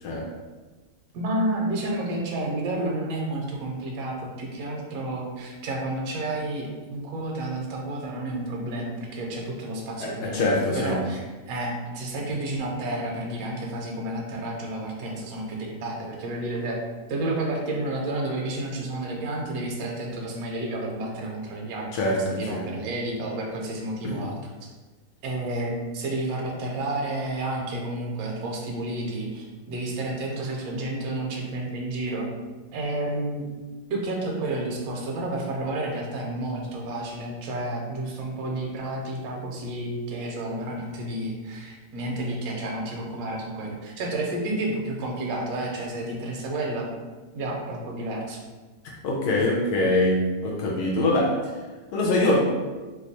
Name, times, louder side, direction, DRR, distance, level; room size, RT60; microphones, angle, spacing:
voice 1, 1.1-11.2 11.5-16.8 17.1-22.0 22.3-24.4 25.2-32.3 32.7-33.5 33.9-46.9 47.3-48.4, right 1 dB, 70° right, -1 dB, 1.0 m, -30 dB
voice 2, 10.0-11.0 21.9-22.7 24.0-24.3 49.0-51.5 51.9-52.5, left 1 dB, 75° left, -2 dB, 1.0 m, -24 dB
2.9 x 2.2 x 4.0 m, 1.3 s
omnidirectional pair, 1.8 m